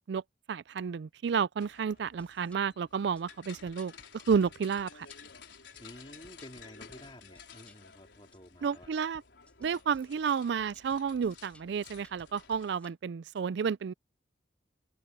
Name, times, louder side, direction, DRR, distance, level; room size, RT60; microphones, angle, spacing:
voice 1, 0.5-5.1 8.6-9.2 9.6-13.9, right 6 dB, 65° right, 0.4 m, -31 dB
sound 1, 1.6-12.7, left 6 dB, 80° left, 4.4 m, -54 dB
sound 2, 1.9-2.6 3.2-3.3 3.7-4.1 4.4-5.2 5.7-7.8 8.3-8.4 8.8-12.9, left 1 dB, 5° left, 4.5 m, -61 dB
voice 2, 5.8-8.9, left 1 dB, 30° left, 3.6 m, -51 dB
head